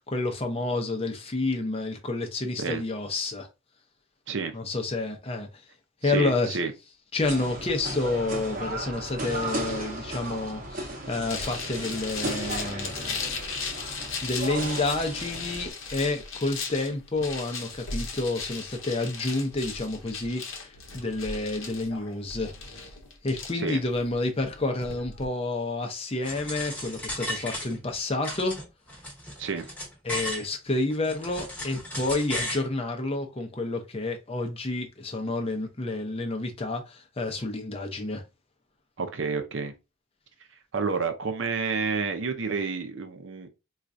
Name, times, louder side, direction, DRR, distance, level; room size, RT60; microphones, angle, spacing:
voice 1, 0.1-3.5 4.5-5.6 6.0-6.6 7.1-13.2 14.2-22.9 23.2-28.6 30.0-38.2, left 2 dB, 25° left, 0.6 m, -29 dB
voice 2, 6.0-6.7 23.5-23.8 29.4-29.7 39.0-39.7 40.7-43.5, right 4 dB, 60° right, 0.6 m, -29 dB
sound 1, 7.2-15.7, right 2 dB, 40° right, 0.9 m, -35 dB
sound 2, 11.3-25.3, left 4 dB, 65° left, 0.8 m, -37 dB
sound 3, 26.2-27.9 28.2-30.5 30.9-32.7, left 1 dB, 10° left, 1.0 m, -35 dB
4.4 x 2.4 x 2.5 m
head